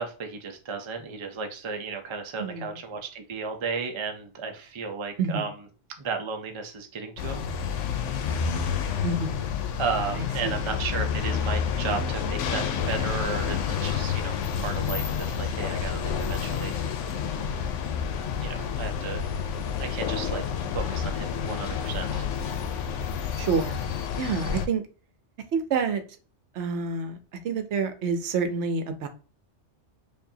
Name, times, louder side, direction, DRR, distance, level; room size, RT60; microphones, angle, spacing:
voice 1, 0.0-5.5 6.0-7.5 9.8-16.9 18.4-19.2 19.8-20.4 20.7-22.3, right 5 dB, 35° right, 5 dB, 0.4 m, -34 dB
voice 2, 2.4-2.8 5.2-5.5 9.0-9.5 10.2-10.7 23.4-23.8 24.2-24.8 25.5-26.0 26.5-27.2 27.4-29.1, right 5 dB, 70° right, 8 dB, 0.9 m, -28 dB
sound 1, 7.2-24.7, left 7 dB, 85° left, 0.9 m, -29 dB
4.6 x 2.5 x 2.7 m, 0.37 s
omnidirectional pair, 1.2 m